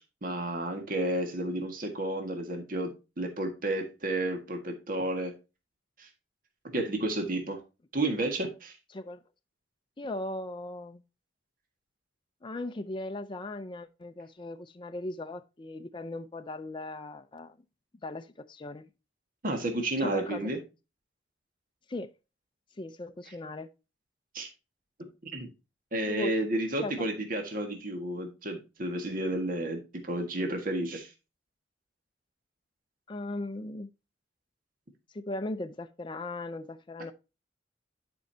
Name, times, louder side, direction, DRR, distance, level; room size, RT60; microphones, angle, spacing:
voice 1, 0.2-2.9 3.2-5.3 6.0-6.1 6.6-7.6 7.9-8.7 19.4-20.6 24.3-24.5 25.3-25.5 25.9-29.8 30.1-31.1, right 1 dB, 50° right, 1.7 m, -31 dB
voice 2, 8.9-9.2 10.0-11.0 12.4-17.6 18.0-18.9 20.0-20.5 21.9-22.1 22.8-23.7 26.1-26.3 26.8-27.1 33.1-33.9 35.1-37.1, left 2 dB, 25° left, 0.5 m, -38 dB
10.5 x 5.3 x 2.7 m
head